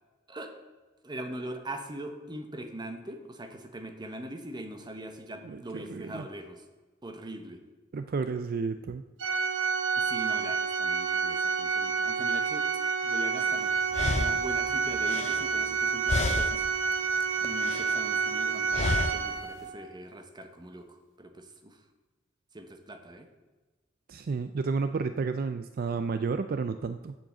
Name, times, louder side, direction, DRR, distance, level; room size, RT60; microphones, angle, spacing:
voice 1, 1.0-6.6 7.0-7.6 10.0-12.7 13.0-13.7 14.1-16.6 17.4-21.8 22.5-23.3, right 1 dB, 25° right, 6 dB, 1.0 m, -41 dB
voice 2, 5.4-6.3 7.9-9.0 24.1-27.2, right 4 dB, 50° right, 10 dB, 0.4 m, -31 dB
Organ, 9.2-19.8, right 5 dB, 80° right, 1.1 m, -29 dB
sound 1, 13.4-13.5 13.9-16.8 17.1-18.0 18.7-19.4, left 3 dB, 35° left, 0.4 m, -32 dB
7.6 x 7.2 x 7.4 m, 1.2 s
head